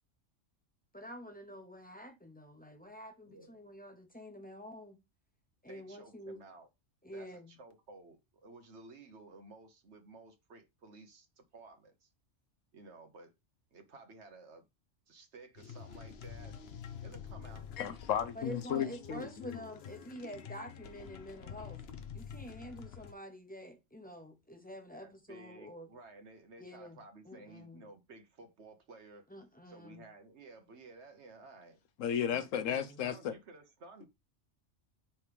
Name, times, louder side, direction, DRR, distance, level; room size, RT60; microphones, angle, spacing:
voice 1, 0.9-5.0 5.6-6.4 7.0-7.5 18.3-21.8 22.1-25.9 26.6-27.0 27.3-27.8 29.3-30.0 32.3-33.1, equal, 10° left, 1.0 m, -48 dB
voice 2, 3.3-3.6 5.7-6.7 7.1-12.1 12.7-13.3 13.7-14.6 15.1-16.6 17.0-17.7 24.9-29.3 29.6-31.8 32.5-34.1, right 3 dB, 60° right, 1.3 m, -54 dB
sound 1, 15.6-23.1, left 7 dB, 60° left, 0.9 m, -48 dB
voice 3, 17.8-19.6 32.0-33.3, left 9 dB, 80° left, 1.1 m, -34 dB
5.9 x 3.2 x 5.0 m
omnidirectional pair, 1.3 m